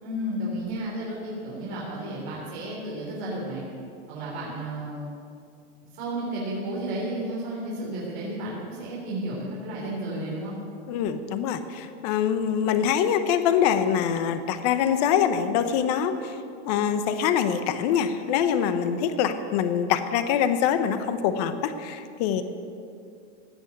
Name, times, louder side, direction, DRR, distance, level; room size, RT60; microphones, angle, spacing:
voice 1, 0.0-3.6 4.1-5.1 6.0-10.5, right 1 dB, 40° right, -6 dB, 3.6 m, -32 dB
voice 2, 10.9-16.4 16.7-22.4, left 8 dB, 35° left, 10 dB, 0.8 m, -24 dB
16.0 x 6.2 x 9.4 m, 2.5 s
supercardioid pair, 170°, 35 cm